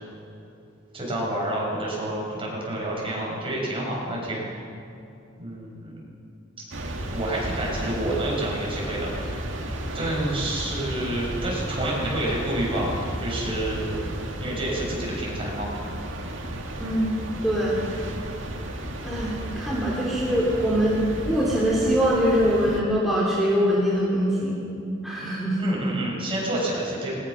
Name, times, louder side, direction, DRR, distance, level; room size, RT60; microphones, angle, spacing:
voice 1, 0.9-4.4 5.4-5.9 7.1-9.5 9.9-14.0 14.4-15.7 25.6-27.1, right 1 dB, 30° right, -4 dB, 7.0 m, -29 dB
sound 1, 6.7-22.8, right 1 dB, 75° right, 2.3 m, -33 dB
voice 2, 17.4-17.8 19.0-24.6 25.0-25.6, equal, ahead, -7 dB, 3.1 m, -23 dB
21.0 x 19.0 x 6.4 m, 2.6 s
head